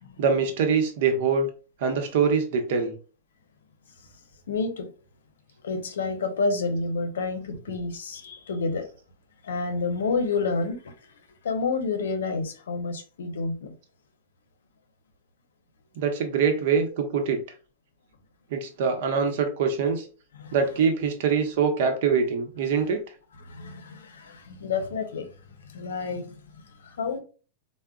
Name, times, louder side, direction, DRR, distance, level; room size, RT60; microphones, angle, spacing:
voice 1, 0.2-1.5 1.8-2.9 16.0-17.4 18.5-20.1 20.5-23.0, right 5 dB, 60° right, 0.8 m, -24 dB
voice 2, 4.5-4.9 5.6-8.9 9.4-11.1 11.4-13.7 20.3-20.6 23.4-25.3 25.6-27.2, left 4 dB, 85° left, 0.6 m, -29 dB
3.5 x 2.1 x 2.3 m
hypercardioid pair, 125°, 0 cm